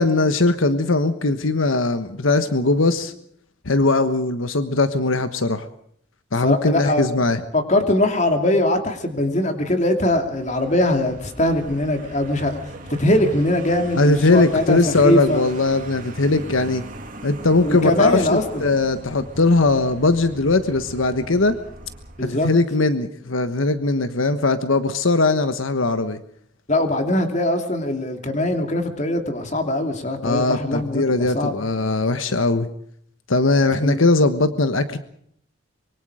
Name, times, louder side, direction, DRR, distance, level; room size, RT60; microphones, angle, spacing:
voice 1, 0.0-3.1 3.6-5.7 6.3-7.4 14.0-16.8 17.2-21.6 22.4-26.2 30.2-32.7 33.3-35.0, left 3 dB, 85° left, 10 dB, 1.3 m, -19 dB
voice 2, 6.4-7.1 7.5-12.6 13.0-15.4 16.3-16.4 17.6-18.6 22.2-22.5 26.7-31.5 33.8-34.0, left 1 dB, 35° left, 5 dB, 3.0 m, -21 dB
Vehicle, 10.2-22.5, right 1 dB, 40° right, 2.7 m, -39 dB
25.0 x 23.5 x 5.0 m, 0.67 s
head